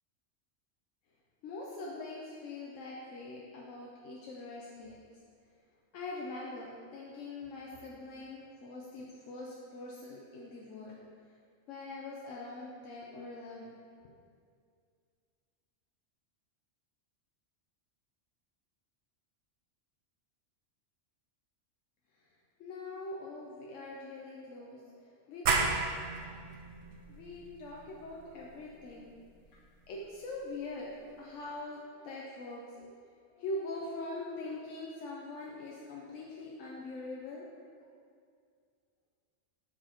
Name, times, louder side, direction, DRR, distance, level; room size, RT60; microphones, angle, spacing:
voice 1, 1.4-5.0 5.9-11.0 11.7-13.8 22.2-22.3 22.6-25.7 27.1-29.1 29.5-29.6 29.9-32.9 33.3-37.9, left 2 dB, 90° left, -3 dB, 1.0 m, -43 dB
sound 1, 25.5-30.8, right 4 dB, 75° right, 0.9 m, -35 dB
5.7 x 4.7 x 4.2 m, 2.2 s
omnidirectional pair, 1.3 m